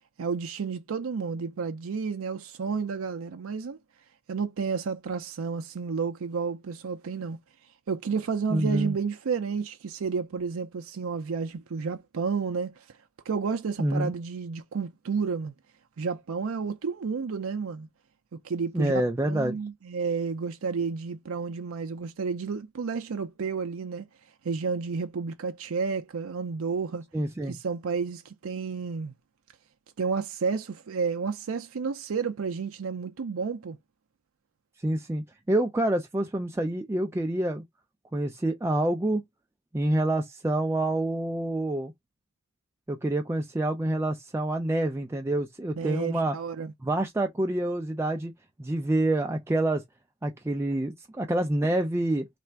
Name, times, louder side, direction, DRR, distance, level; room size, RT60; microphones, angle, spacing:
voice 1, 0.2-3.8 4.3-7.4 7.9-13.0 13.3-15.5 16.0-17.9 18.3-24.1 24.4-27.0 27.5-29.1 30.0-33.8 45.8-46.7, right 5 dB, 70° right, 0.5 m, -31 dB
voice 2, 8.5-8.9 13.8-14.1 18.7-19.6 27.1-27.6 34.8-37.6 38.1-39.2 39.7-41.9 42.9-46.4 46.8-48.3 48.6-49.8 50.2-52.3, right 1 dB, 10° right, 0.4 m, -27 dB
3.3 x 2.5 x 4.4 m
head